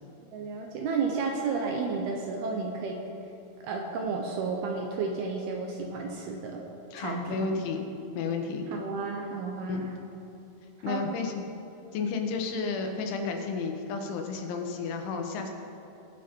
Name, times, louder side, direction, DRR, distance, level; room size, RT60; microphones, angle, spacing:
voice 1, 0.3-3.0 3.6-6.6 7.0-7.5 8.7-10.0 10.9-11.0, right 4 dB, 75° right, 1 dB, 2.4 m, -32 dB
voice 2, 6.9-7.8 8.2-8.7 9.7-9.8 10.8-11.3 11.9-15.5, left 4 dB, 85° left, 3 dB, 3.6 m, -32 dB
20.5 x 8.1 x 4.5 m, 2.7 s
omnidirectional pair, 5.3 m